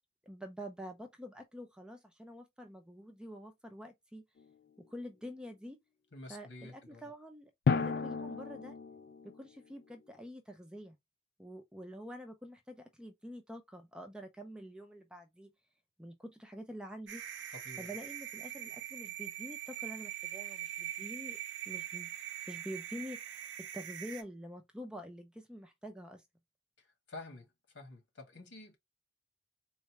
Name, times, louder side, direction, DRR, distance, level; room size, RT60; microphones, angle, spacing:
voice 1, 0.2-4.2 4.8-5.8 6.3-8.7 9.2-11.0 11.4-15.5 16.0-17.2 17.8-21.4 21.7-22.1 22.4-26.2, equal, 5° right, 0.5 m, -47 dB
Drum, 4.4-4.5 7.7-9.4, left 5 dB, 55° left, 0.3 m, -33 dB
voice 2, 6.1-7.0 17.5-17.9 26.8-28.8, left 2 dB, 85° left, 1.7 m, -50 dB
sound 1, 17.1-24.2, right 11 dB, 75° right, 0.6 m, -42 dB
4.0 x 2.3 x 2.9 m
head